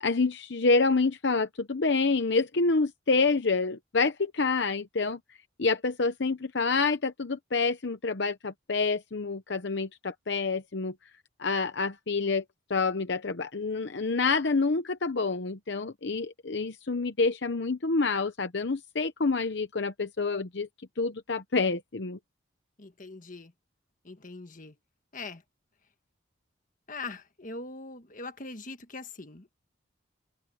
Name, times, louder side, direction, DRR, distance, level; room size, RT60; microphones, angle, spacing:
voice 1, 0.0-10.9 11.4-12.4 12.7-20.7 21.0-22.2, left 4 dB, 60° left, 0.8 m, -27 dB
voice 2, 22.8-23.5 24.0-24.7 25.1-25.4 26.9-29.6, left 3 dB, 40° left, 1.5 m, -42 dB
head